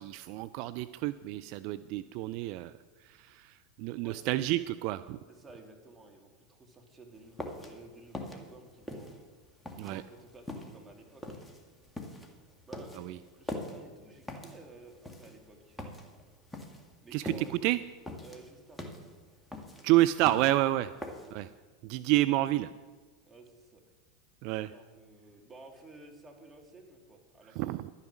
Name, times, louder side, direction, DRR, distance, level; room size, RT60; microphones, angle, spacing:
voice 1, 0.0-2.7 3.0-5.2 9.8-10.0 13.0-13.2 17.1-17.8 19.8-20.9 21.3-21.5 21.8-22.7 24.4-24.7 27.6-27.9, right 16 dB, 55° right, 14 dB, 0.3 m, -29 dB
voice 2, 3.9-4.5 5.3-9.2 9.8-11.4 12.7-12.9 13.3-15.8 17.0-17.6 18.2-18.9 21.3-21.6 23.3-23.8 24.5-27.7, right 2 dB, 15° right, 2 dB, 2.6 m, -53 dB
sound 1, 7.2-21.5, left 1 dB, 5° left, 1.9 m, -43 dB
12.0 x 9.7 x 6.1 m, 1.4 s
hypercardioid pair, 90°, 0 cm